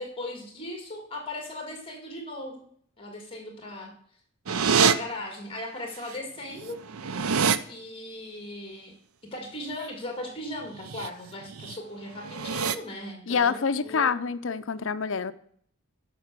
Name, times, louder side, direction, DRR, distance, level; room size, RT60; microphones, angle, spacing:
voice 1, 0.0-2.7 3.0-3.9 4.8-6.8 7.7-9.0 9.3-14.1, left 1 dB, 25° left, 2 dB, 2.1 m, -38 dB
sound 1, 4.5-4.9 6.1-6.2 6.5-7.6 10.7-11.1 11.5-11.8 12.2-12.7, right 6 dB, 80° right, 0.6 m, -25 dB
voice 2, 13.3-15.3, left 6 dB, 65° left, 13 dB, 0.5 m, -26 dB
10.0 x 5.9 x 6.7 m, 0.62 s
head